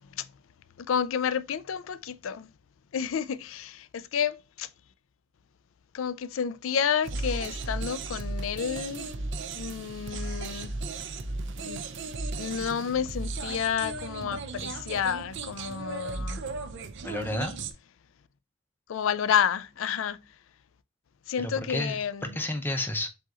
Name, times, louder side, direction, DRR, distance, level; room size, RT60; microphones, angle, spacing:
voice 1, 0.8-2.5 2.9-4.7 5.9-9.1 9.5-10.8 11.6-11.8 12.4-16.4 18.9-20.2 21.3-22.4, left 7 dB, 65° left, 0.4 m, -30 dB
sound 1, 7.0-17.7, right 3 dB, 60° right, 0.6 m, -35 dB
voice 2, 17.0-17.5 21.4-23.1, left 1 dB, 10° left, 0.6 m, -31 dB
7.5 x 2.9 x 2.4 m
head